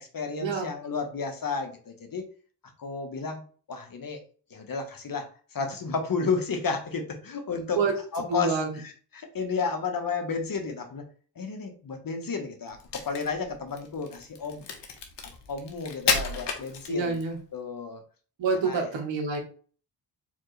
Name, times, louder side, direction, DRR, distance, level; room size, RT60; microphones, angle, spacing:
voice 1, 0.0-2.2 2.8-3.4 3.7-4.2 4.5-7.8 8.1-11.1 11.4-14.7 15.5-17.2 17.5-18.0 18.6-18.9, left 5 dB, 50° left, 4 dB, 1.3 m, -32 dB
voice 2, 8.3-8.7 16.9-17.4 18.4-19.4, right 4 dB, 80° right, 3 dB, 1.4 m, -27 dB
Crack, 12.7-17.3, left 5 dB, 70° left, 1.2 m, -32 dB
4.4 x 3.5 x 3.3 m, 0.41 s
cardioid pair, 65°, 44 cm